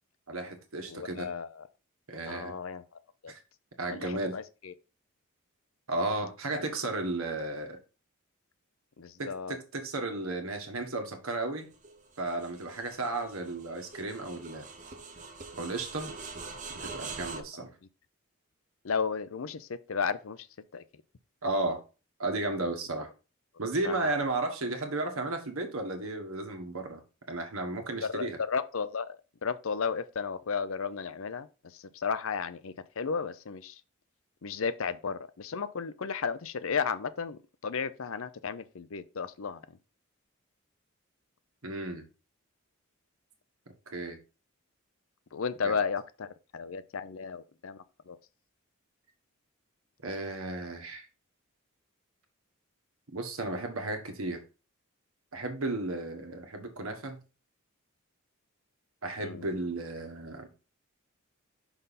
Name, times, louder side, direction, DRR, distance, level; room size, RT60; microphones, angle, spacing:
voice 1, 0.3-1.3 2.1-2.5 3.3-3.4 3.8-4.3 5.9-7.8 9.2-11.7 12.2-14.7 15.6-16.1 16.8-17.7 21.4-21.8 22.2-23.1 23.6-27.0 27.3-28.4 41.6-42.1 43.9-44.2 45.6-45.7 50.0-51.1 53.1-54.4 55.3-57.2 59.0-60.5, right 2 dB, 80° right, 1.5 m, -34 dB
voice 2, 0.9-1.7 2.3-2.8 3.2-3.3 3.9-4.7 6.5-6.6 9.0-9.6 18.8-20.5 20.7-20.8 23.8-24.3 28.0-29.2 29.4-33.8 34.4-39.6 45.3-46.3 46.5-48.2 59.2-59.5, left 5 dB, 75° left, 0.6 m, -34 dB
sound 1, 11.7-17.4, right 4 dB, 35° right, 0.9 m, -44 dB
5.8 x 5.4 x 4.2 m
head